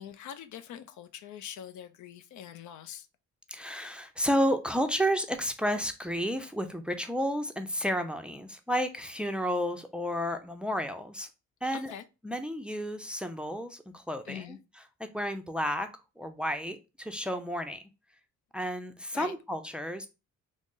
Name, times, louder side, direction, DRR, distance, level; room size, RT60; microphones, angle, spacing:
voice 1, 0.0-3.1 11.7-12.0 14.2-14.6 19.1-19.3, left 9 dB, 75° left, 0.5 m, -43 dB
voice 2, 3.5-11.3 11.6-11.9 12.2-14.6 15.1-15.9 16.2-17.8 18.5-20.1, equal, 5° right, 0.4 m, -31 dB
3.8 x 2.0 x 3.7 m
cardioid pair, 90°, 30 cm